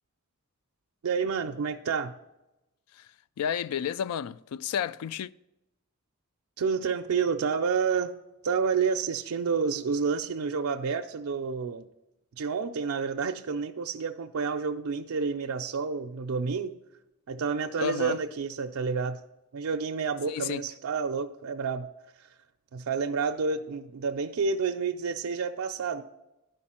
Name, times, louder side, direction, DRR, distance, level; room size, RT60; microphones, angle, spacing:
voice 1, 1.0-2.1 6.6-8.2 8.4-11.9 12.4-16.7 17.3-19.2 19.5-21.9 22.7-26.0, right 5 dB, 70° right, 0.4 m, -29 dB
voice 2, 3.4-5.3 17.8-18.2 20.3-20.6, left 8 dB, 85° left, 0.3 m, -31 dB
11.5 x 5.2 x 4.3 m
head